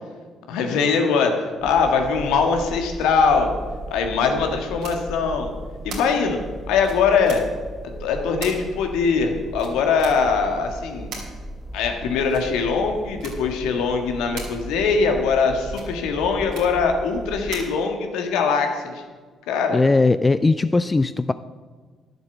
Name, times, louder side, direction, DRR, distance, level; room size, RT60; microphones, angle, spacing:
voice 1, 0.5-3.6 3.9-5.5 5.8-6.4 6.7-7.4 8.0-11.1 11.7-19.0 19.5-19.8, left 5 dB, 75° left, 4 dB, 1.7 m, -22 dB
sound 1, 1.6-17.5, equal, 5° right, 2.6 m, -37 dB
sound 2, 4.8-5.0 5.9-6.0 6.8-7.4 8.4-8.5 9.6-10.1 11.1-11.2 12.3-12.5 13.2-13.3 14.4-14.5 15.7-15.9 16.5-16.7 17.5-17.6, right 4 dB, 70° right, 3.3 m, -36 dB
voice 2, 19.7-21.3, left 3 dB, 25° left, 14 dB, 0.4 m, -19 dB
11.0 x 8.0 x 7.2 m, 1.5 s
hypercardioid pair, 50°, 0 cm